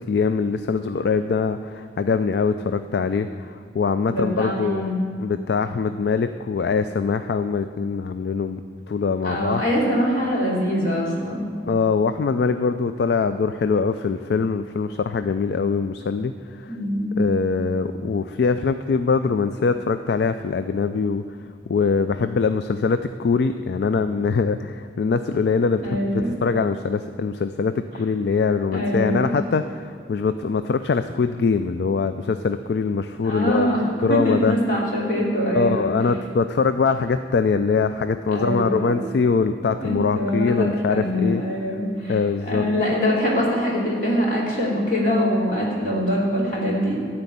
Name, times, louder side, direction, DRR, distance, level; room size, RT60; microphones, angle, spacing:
voice 1, 0.0-4.9 5.2-8.6 8.9-9.6 11.7-16.7 17.2-21.2 21.7-33.7 34.0-34.5 35.5-41.4 42.1-42.6, left 5 dB, 65° left, 10 dB, 0.3 m, -23 dB
voice 2, 4.0-5.0 9.2-11.4 16.7-17.2 25.8-26.3 28.7-29.3 33.2-35.9 38.3-38.9 39.8-42.2 42.4-47.0, equal, 45° left, -5 dB, 2.9 m, -23 dB
13.0 x 4.5 x 8.4 m, 2.3 s
head